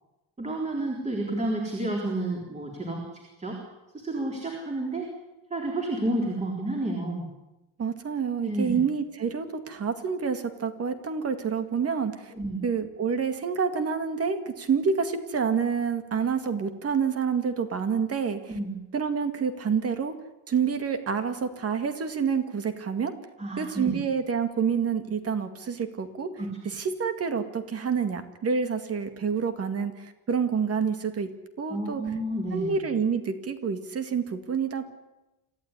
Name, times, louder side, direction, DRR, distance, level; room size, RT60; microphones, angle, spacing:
voice 1, 0.4-3.0 3.4-3.6 3.9-5.1 5.5-7.2 8.4-8.8 12.3-12.6 18.5-18.8 23.4-24.0 26.4-26.5 31.7-32.8, right 2 dB, 15° right, -1 dB, 3.9 m, -30 dB
voice 2, 7.8-12.3 12.6-18.5 18.9-20.1 20.5-23.1 23.6-26.3 26.7-31.3 31.6-32.0 32.5-34.9, right 6 dB, 35° right, 8 dB, 2.2 m, -28 dB
27.0 x 15.0 x 9.9 m, 0.99 s
cardioid pair, 175°, 40 cm